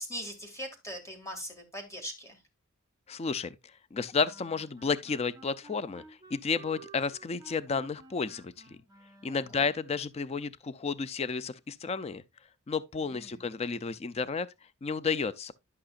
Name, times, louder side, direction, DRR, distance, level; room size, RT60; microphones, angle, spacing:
voice 1, 0.0-2.4 9.2-9.7 13.0-13.4, equal, 15° left, 2.1 m, -41 dB
voice 2, 3.1-3.5 3.9-6.0 6.3-8.8 9.2-12.2 12.7-14.5 14.8-15.5, left 5 dB, 30° left, 0.4 m, -32 dB
sound 1, 4.1-9.8, right 3 dB, 20° right, 1.2 m, -54 dB
11.5 x 5.9 x 2.4 m
head